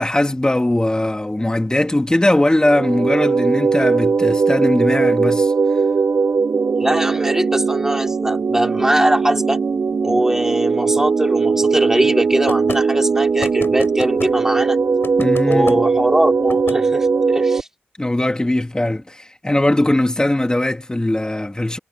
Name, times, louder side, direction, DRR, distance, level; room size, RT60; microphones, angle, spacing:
voice 1, 0.0-5.5 15.2-15.8 18.0-21.8, left 1 dB, 20° left, 2.5 m, -19 dB
sound 1, 2.6-17.6, right 5 dB, 60° right, 0.7 m, -19 dB
voice 2, 6.8-9.6 10.0-14.8 15.4-17.7, right 1 dB, 10° right, 4.6 m, -21 dB
sound 2, 12.5-12.8 13.4-14.3 15.0-15.8 16.5-16.8, left 4 dB, 65° left, 5.4 m, -30 dB
cardioid pair, 50°, 4 cm